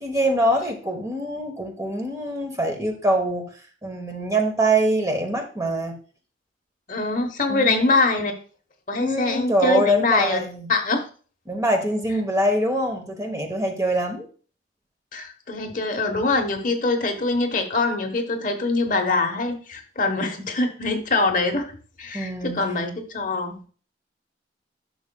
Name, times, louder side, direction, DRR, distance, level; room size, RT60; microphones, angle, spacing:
voice 1, 0.0-3.5 3.8-6.0 7.5-8.0 9.0-10.7 11.5-14.3 22.1-22.6, right 1 dB, 20° right, 4 dB, 1.1 m, -24 dB
voice 2, 6.9-8.3 8.9-10.4 10.7-11.0 15.1-21.7 22.0-23.6, left 3 dB, 45° left, 5 dB, 1.0 m, -23 dB
11.0 x 6.1 x 2.3 m, 0.39 s
head